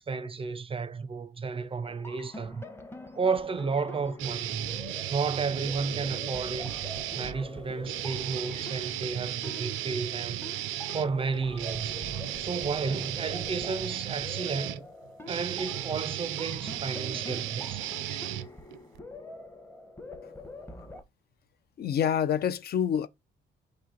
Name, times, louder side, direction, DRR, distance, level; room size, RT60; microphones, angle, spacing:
voice 1, 0.0-2.6 3.1-4.8 5.1-6.7 7.1-10.5 10.9-12.0 12.4-14.9 15.3-17.9, right 4 dB, 25° right, 0.5 m, -32 dB
sound 1, 1.8-21.0, left 2 dB, 10° left, 0.8 m, -45 dB
sound 2, 4.2-7.4 7.8-19.0, right 13 dB, 80° right, 0.4 m, -35 dB
voice 2, 21.8-23.1, left 9 dB, 55° left, 0.4 m, -27 dB
4.2 x 2.8 x 3.7 m
cardioid pair, 90°, 20 cm